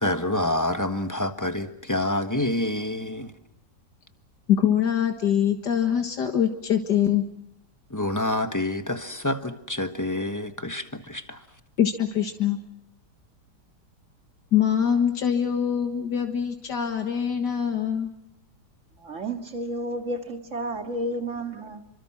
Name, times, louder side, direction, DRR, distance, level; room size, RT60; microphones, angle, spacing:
voice 1, 0.0-3.3 7.9-11.4, left 1 dB, 10° left, 1.3 m, -27 dB
voice 2, 4.5-7.2 11.8-12.6 14.5-18.1, left 9 dB, 80° left, 2.2 m, -23 dB
voice 3, 19.0-21.8, right 1 dB, 45° right, 2.5 m, -31 dB
29.5 x 25.0 x 6.1 m
omnidirectional pair, 1.8 m